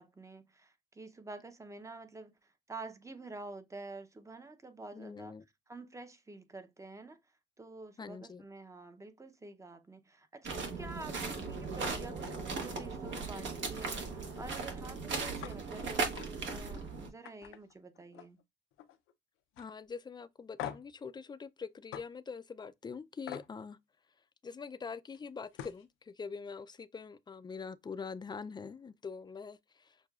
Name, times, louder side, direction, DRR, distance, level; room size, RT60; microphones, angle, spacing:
voice 1, 0.0-5.3 5.7-7.2 7.6-16.0 16.5-18.4, right 3 dB, 15° right, 0.6 m, -48 dB
voice 2, 4.9-5.4 8.0-8.4 19.6-23.8 24.4-30.1, left 5 dB, 20° left, 0.3 m, -44 dB
sound 1, 10.4-17.1, right 4 dB, 65° right, 1.2 m, -37 dB
sound 2, 15.4-15.6 15.9-16.3 16.7-16.8 17.3-18.4 18.7-19.1 19.6-19.7 20.6-21.0 21.9-22.1 23.3-23.5 25.1-25.2 25.5-25.8, left 11 dB, 90° left, 0.5 m, -44 dB
6.1 x 2.2 x 2.3 m
cardioid pair, 90°, 20 cm